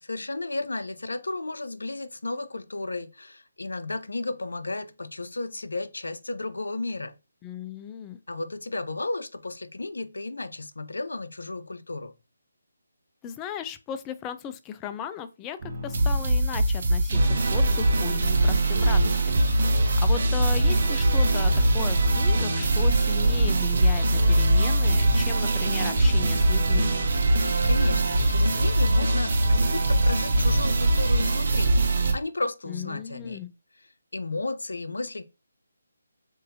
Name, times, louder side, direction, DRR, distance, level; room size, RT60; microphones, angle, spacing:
voice 1, 0.0-7.2 8.3-12.1 27.6-33.4 34.1-35.2, left 2 dB, 80° left, 0.6 m, -33 dB
voice 2, 7.4-8.2 13.2-15.6 15.8-17.2 17.5-19.4 20.0-26.9 32.7-33.5, left 9 dB, 15° left, 0.4 m, -36 dB
Broken Fable, 15.6-32.1, right 1 dB, 55° right, 1.2 m, -22 dB
7.4 x 2.6 x 2.6 m
figure-of-eight pair, 155°, 0 cm